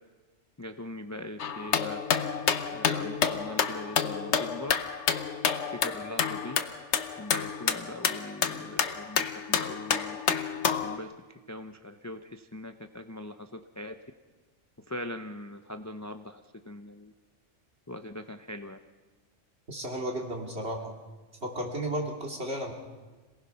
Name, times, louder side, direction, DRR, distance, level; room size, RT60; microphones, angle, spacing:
voice 1, 0.6-2.0 2.7-4.7 5.7-6.6 7.2-10.2 10.8-11.1 11.5-13.9 14.9-17.1 17.9-18.8, left 1 dB, 20° left, 7 dB, 0.5 m, -41 dB
sound 1, 1.4-11.0, left 7 dB, 65° left, 1.2 m, -29 dB
voice 2, 19.7-20.9 21.4-22.7, right 1 dB, 55° right, 0 dB, 3.0 m, -33 dB
26.5 x 18.5 x 5.7 m, 1.3 s
omnidirectional pair, 1.3 m